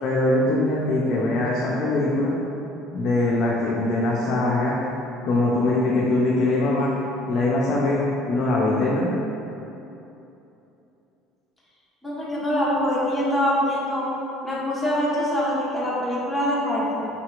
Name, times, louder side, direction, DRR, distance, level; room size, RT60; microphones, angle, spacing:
voice 1, 0.0-2.3 2.9-4.8 5.2-6.9 7.3-8.0 8.3-9.1, left 2 dB, 55° left, -5 dB, 0.4 m, -22 dB
voice 2, 12.0-14.1 14.4-17.1, equal, ahead, -8 dB, 1.1 m, -24 dB
3.9 x 2.8 x 2.4 m, 2.9 s
hypercardioid pair, 70°, 0 cm